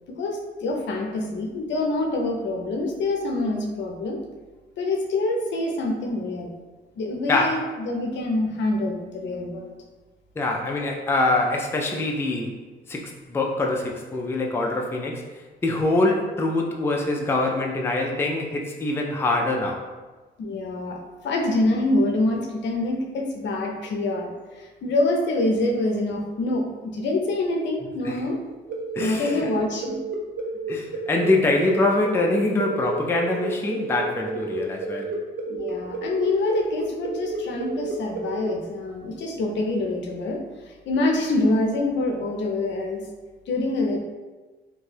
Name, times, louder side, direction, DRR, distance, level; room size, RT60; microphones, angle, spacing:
voice 1, 0.1-4.2 4.8-6.5 7.0-9.7 20.4-21.0 21.2-28.4 29.0-30.0 35.5-40.4 40.9-43.0 43.5-44.0, left 2 dB, 65° left, 2 dB, 0.5 m, -26 dB
voice 2, 7.3-7.6 10.4-12.5 12.9-15.2 15.6-19.9 28.0-28.2 28.9-29.5 30.7-35.1, left 2 dB, 10° left, 0 dB, 0.3 m, -24 dB
sound 1, 28.7-38.5, right 4 dB, 50° right, 0.6 m, -31 dB
2.6 x 2.2 x 3.3 m, 1.3 s
cardioid pair, 90°, 20 cm